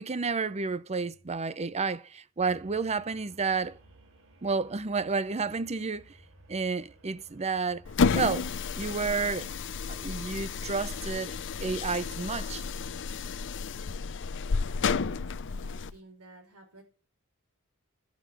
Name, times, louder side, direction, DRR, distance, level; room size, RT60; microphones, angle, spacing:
voice 1, 0.0-3.8 4.4-6.2 6.5-7.8 8.1-9.5 9.9-11.4 11.6-12.6, right 4 dB, 30° right, 0.7 m, -31 dB
sound 1, 2.4-13.1, right 1 dB, 65° right, 3.3 m, -58 dB
sound 2, 7.9-15.9, left 5 dB, 60° left, 0.6 m, -31 dB
voice 2, 14.8-16.8, right 2 dB, 85° right, 5.6 m, -53 dB
13.0 x 6.4 x 9.0 m
head